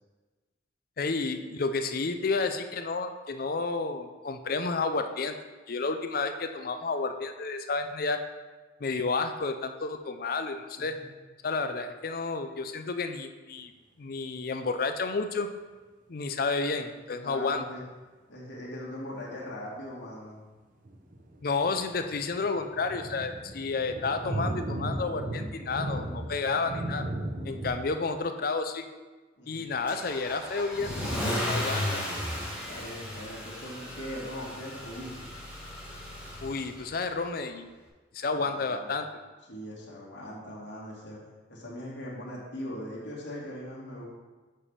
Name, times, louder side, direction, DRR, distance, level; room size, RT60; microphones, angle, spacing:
voice 1, 1.0-5.4 5.7-8.2 8.8-11.0 11.4-13.7 14.0-15.5 16.1-17.6 21.4-27.1 27.4-28.9 29.5-31.0 31.4-32.0 36.4-37.7 38.1-39.1, left 4 dB, 50° left, 8 dB, 0.5 m, -31 dB
voice 2, 10.8-11.1 17.2-17.8 18.3-20.4 29.4-29.7 32.7-35.3 38.2-38.9 39.5-41.2 41.5-44.1, equal, 75° left, -5 dB, 2.0 m, -40 dB
sound 1, 20.9-27.7, right 1 dB, 45° right, 0.7 m, -36 dB
Car / Engine starting / Accelerating revving vroom, 29.9-37.0, left 1 dB, 5° right, 1.3 m, -35 dB
7.4 x 3.4 x 5.6 m, 1.3 s
head